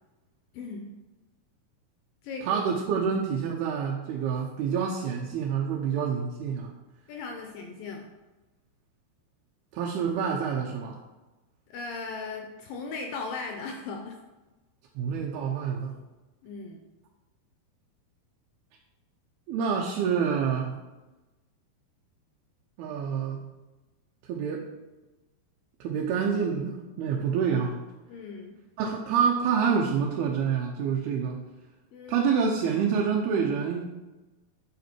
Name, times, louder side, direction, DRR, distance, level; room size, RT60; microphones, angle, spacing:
voice 1, 0.5-0.9 2.2-2.6 7.1-8.1 11.7-14.2 16.4-16.8 28.1-28.6 31.9-32.3, left 4 dB, 75° left, 3 dB, 2.2 m, -37 dB
voice 2, 2.4-6.7 9.7-11.0 15.0-16.0 19.5-20.8 22.8-23.4 24.3-24.6 25.8-27.8 28.8-31.4 32.1-33.8, right 6 dB, 80° right, -1 dB, 2.7 m, -27 dB
9.2 x 5.7 x 4.5 m, 1.1 s
omnidirectional pair, 4.7 m